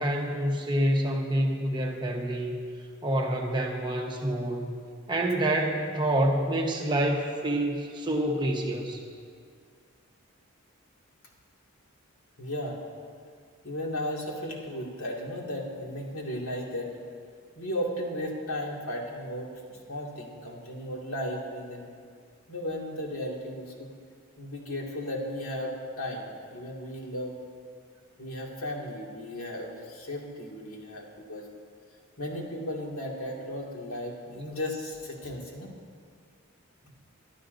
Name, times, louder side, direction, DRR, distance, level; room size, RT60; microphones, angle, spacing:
voice 1, 0.0-2.7 3.0-4.8 5.1-9.0, right 1 dB, 20° right, 0 dB, 1.1 m, -27 dB
voice 2, 12.4-12.8 13.6-16.9 17.6-21.9 22.5-23.9 24.4-27.4 28.2-31.4 32.2-35.7, left 1 dB, 75° left, -2 dB, 2.3 m, -35 dB
23.5 x 11.5 x 2.7 m, 2.1 s
head